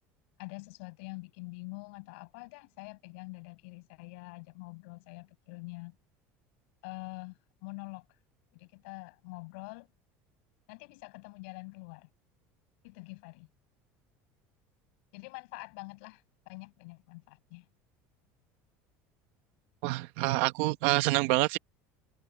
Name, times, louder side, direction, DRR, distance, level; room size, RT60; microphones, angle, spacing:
voice 1, 0.4-6.0 6.8-8.1 8.5-9.9 10.7-12.1 12.8-13.5 15.1-17.6, left 29 dB, 85° left, 5.8 m, -45 dB
voice 2, 19.8-21.6, right 20 dB, 80° right, 1.1 m, -27 dB
supercardioid pair, 130°, 6 cm